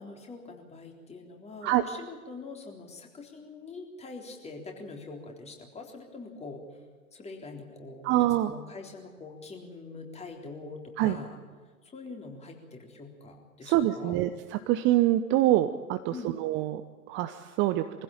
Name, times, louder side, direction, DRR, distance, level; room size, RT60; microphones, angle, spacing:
voice 1, 0.0-6.8 7.1-11.4 11.8-14.2 16.1-16.4, left 3 dB, 15° left, 2 dB, 3.7 m, -44 dB
voice 2, 8.0-8.5 11.0-11.2 13.6-16.8 17.1-17.8, right 14 dB, 25° right, 10 dB, 0.9 m, -25 dB
23.5 x 16.0 x 9.0 m, 1.5 s
figure-of-eight pair, 105°, 44 cm